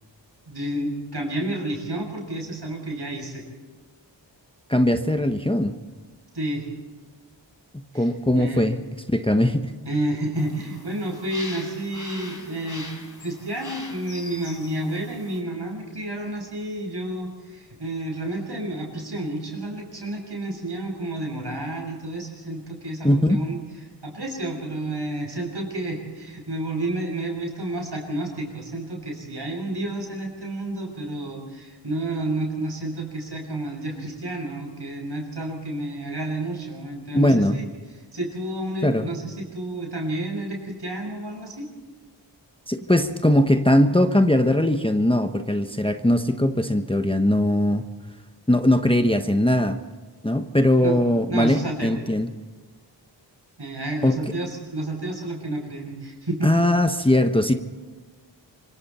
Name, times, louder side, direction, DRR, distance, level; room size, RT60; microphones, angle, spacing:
voice 1, 0.5-3.5 6.3-6.7 7.9-8.6 9.8-12.9 13.2-23.6 24.0-37.7 38.1-41.7 50.8-51.0 51.3-52.0 53.6-56.5, right 1 dB, 60° right, 1 dB, 6.7 m, -30 dB
voice 2, 4.7-5.8 7.7-8.8 9.1-9.7 23.0-23.4 37.1-37.6 38.8-39.1 42.7-47.9 48.5-49.8 50.2-52.3 54.0-54.2 56.4-57.5, left 1 dB, 10° left, 6 dB, 1.1 m, -20 dB
sound 1, 10.4-15.4, left 2 dB, 45° left, 4.2 m, -41 dB
25.5 x 24.5 x 4.3 m, 1.4 s
wide cardioid pair, 45°, 44 cm